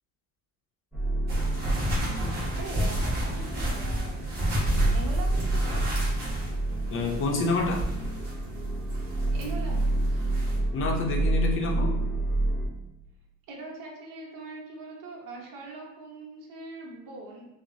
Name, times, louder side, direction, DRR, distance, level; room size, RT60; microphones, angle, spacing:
sound 1, 0.9-12.7, right 2 dB, 5° right, 1.1 m, -29 dB
sound 2, 1.3-10.6, equal, 30° right, 1.4 m, -31 dB
voice 1, 2.6-4.4 4.9-5.9 9.3-10.2 13.5-17.5, right 3 dB, 65° right, -2 dB, 1.0 m, -41 dB
voice 2, 6.9-7.8 10.7-12.0, left 3 dB, 35° left, 2 dB, 0.6 m, -27 dB
6.0 x 2.1 x 2.7 m, 0.92 s
cardioid pair, 155°, 34 cm